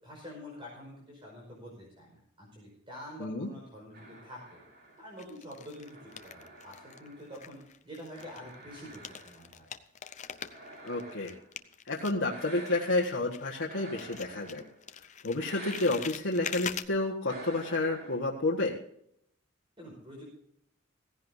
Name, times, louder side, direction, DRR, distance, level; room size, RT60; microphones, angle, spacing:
voice 1, 0.0-4.6 5.0-9.7 19.8-20.3, left 1 dB, 25° right, -3 dB, 5.2 m, -47 dB
voice 2, 3.2-3.5 10.8-11.3 11.8-14.7 15.0-18.7, left 2 dB, 70° left, -3 dB, 1.6 m, -30 dB
sound 1, 3.9-7.6 8.1-9.6 10.2-11.6 12.3-13.3 13.7-14.9 15.4-16.2 17.3-18.2, right 2 dB, 45° right, 3.5 m, -49 dB
sound 2, 4.0-4.6 5.2-7.1 7.3-13.7 14.0-16.9, left 8 dB, 35° left, 0.6 m, -43 dB
16.5 x 16.0 x 2.8 m, 0.70 s
head